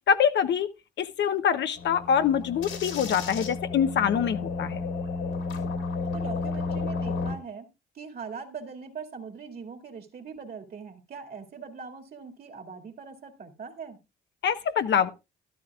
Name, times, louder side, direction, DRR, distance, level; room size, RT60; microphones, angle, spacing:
voice 1, 0.1-0.7 1.0-4.8 14.4-15.1, left 8 dB, 65° left, 0.8 m, -24 dB
sound 1, 1.8-7.3, left 4 dB, 80° left, 3.6 m, -32 dB
voice 2, 6.1-7.7 7.9-14.0, right 5 dB, 50° right, 2.3 m, -41 dB
13.0 x 12.0 x 2.4 m
cardioid pair, 90°, 20 cm